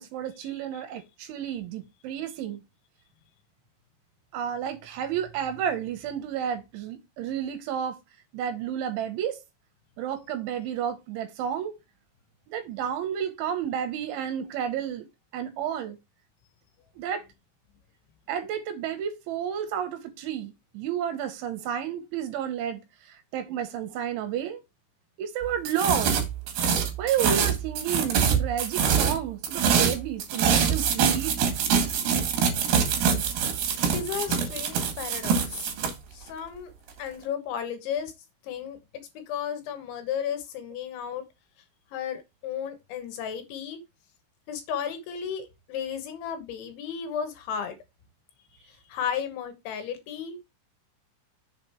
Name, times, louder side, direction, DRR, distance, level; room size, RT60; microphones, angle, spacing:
voice 1, 0.0-2.6 4.3-8.0 8.3-9.4 10.0-11.7 12.5-15.1 15.3-16.0 17.0-17.2 18.3-24.6 25.2-26.2 27.0-31.3, right 9 dB, 75° right, 3.2 m, -31 dB
sound 1, 25.7-29.2 29.4-35.9, right 7 dB, 60° right, 3.3 m, -24 dB
voice 2, 33.9-35.7 36.1-36.7 37.0-38.1 38.4-38.8 39.1-41.2 41.9-43.8 44.5-47.8 48.7-50.4, left 8 dB, 75° left, 3.3 m, -34 dB
7.2 x 5.1 x 4.4 m
omnidirectional pair, 5.9 m